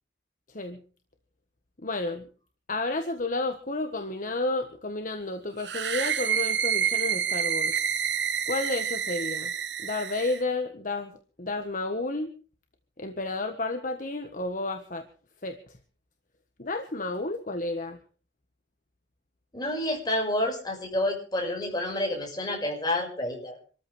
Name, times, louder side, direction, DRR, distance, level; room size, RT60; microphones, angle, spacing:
voice 1, 1.8-2.3 2.7-7.7 8.5-9.5 9.8-11.1 11.4-12.3 13.0-15.1 15.4-15.6 16.6-18.0, left 2 dB, 45° left, 6 dB, 1.5 m, -31 dB
sound 1, 5.6-10.4, right 8 dB, 65° right, 1.1 m, -28 dB
voice 2, 19.5-23.6, left 1 dB, 20° left, 1 dB, 5.9 m, -29 dB
26.5 x 14.0 x 3.5 m, 0.38 s
head